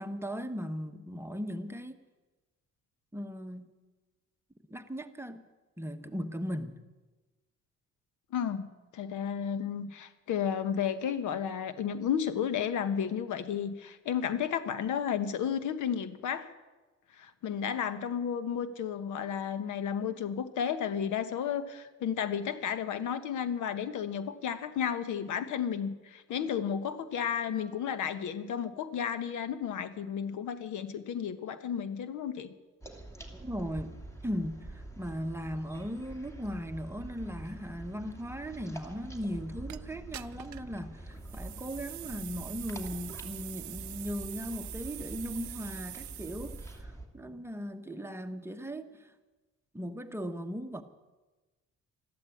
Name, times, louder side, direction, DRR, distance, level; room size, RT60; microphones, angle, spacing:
voice 1, 0.0-2.0 3.1-3.7 4.7-5.4 5.8-6.7 33.4-49.1 49.7-50.8, equal, 10° right, 7 dB, 1.1 m, -38 dB
voice 2, 8.3-16.5 17.2-32.5, left 8 dB, 80° left, 12 dB, 1.1 m, -33 dB
sound 1, 32.8-47.1, right 2 dB, 10° left, 2.5 m, -46 dB
sound 2, 39.7-39.8 40.1-40.7 41.2-46.8, right 16 dB, 70° right, 0.6 m, -44 dB
13.5 x 12.5 x 8.4 m, 1.2 s
cardioid pair, 90°, 30 cm